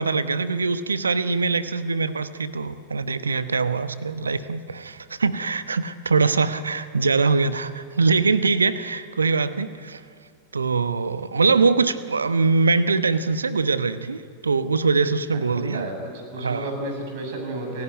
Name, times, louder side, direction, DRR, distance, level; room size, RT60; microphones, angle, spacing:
voice 1, 0.0-10.0 10.5-15.9 16.4-16.7, right 4 dB, 75° right, 13 dB, 1.0 m, -23 dB
voice 2, 15.3-17.8, right 1 dB, 50° right, 3 dB, 6.9 m, -32 dB
29.5 x 17.0 x 9.4 m, 2.2 s
figure-of-eight pair, 90°, 0 cm